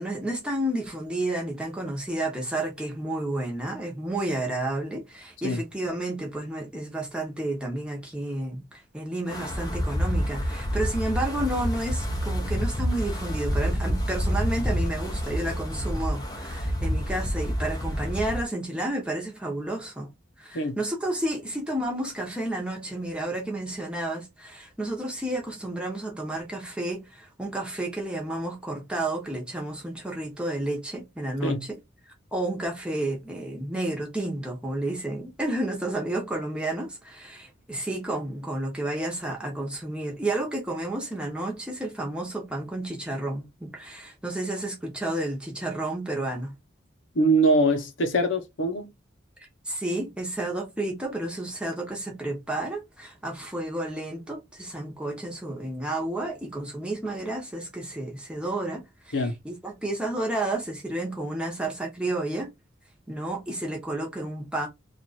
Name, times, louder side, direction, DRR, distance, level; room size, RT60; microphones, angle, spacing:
voice 1, 0.0-20.1 20.4-31.8 32.3-46.5 49.7-62.5 63.1-64.7, right 1 dB, 5° right, 1.0 m, -31 dB
Wind, 9.3-18.4, equal, 20° left, 0.8 m, -28 dB
voice 2, 47.2-48.9 59.1-59.3, right 1 dB, 85° left, 0.8 m, -23 dB
3.0 x 2.5 x 4.1 m
head